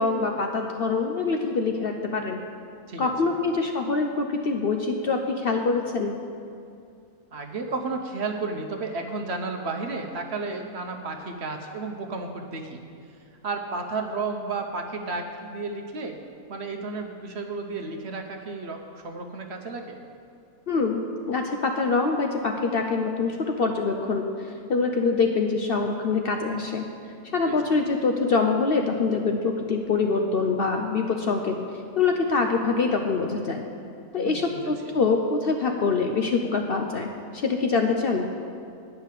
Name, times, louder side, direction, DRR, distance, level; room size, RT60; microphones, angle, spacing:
voice 1, 0.0-2.4 3.0-6.1 20.7-21.0 21.3-24.3 24.7-26.8 27.3-31.6 32.0-33.6 34.1-38.3, left 4 dB, 60° left, 3 dB, 0.7 m, -24 dB
voice 2, 7.3-12.8 13.4-16.2 16.5-20.0 27.4-27.6 34.2-34.7, right 3 dB, 55° right, 3 dB, 1.0 m, -32 dB
9.9 x 5.6 x 8.2 m, 2.5 s
omnidirectional pair, 1.4 m